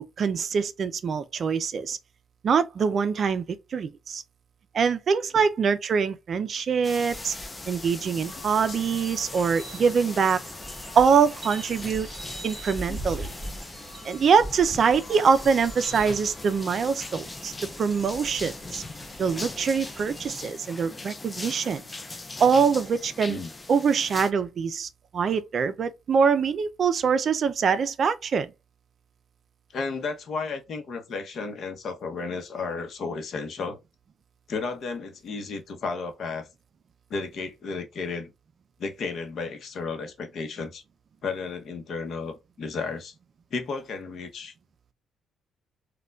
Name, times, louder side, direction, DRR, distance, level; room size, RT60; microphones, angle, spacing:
voice 1, 0.0-2.0 2.4-3.4 3.7-4.2 4.7-7.4 7.7-10.4 11.0-12.1 12.4-13.3 14.0-17.5 17.8-18.8 19.2-21.8 22.4-23.4 23.7-28.5, right 6 dB, 55° right, 0.4 m, -24 dB
sound 1, 6.8-24.3, left 3 dB, 20° left, 0.4 m, -40 dB
sound 2, 7.1-20.3, right 1 dB, 10° right, 1.2 m, -42 dB
voice 2, 29.7-33.8 34.5-36.5 37.1-38.3 38.8-40.8 41.2-43.1 43.5-44.5, left 4 dB, 60° left, 0.8 m, -33 dB
4.2 x 2.2 x 2.3 m
cardioid pair, 90°, 0 cm